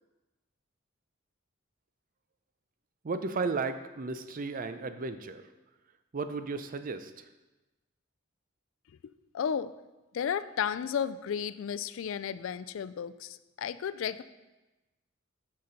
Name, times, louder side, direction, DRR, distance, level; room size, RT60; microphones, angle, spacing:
voice 1, 3.0-5.5 6.1-7.3, right 4 dB, 45° right, 10 dB, 0.5 m, -34 dB
voice 2, 9.0-9.7 10.1-14.2, left 7 dB, 75° left, 14 dB, 0.3 m, -33 dB
6.7 x 5.9 x 5.1 m, 1.1 s
head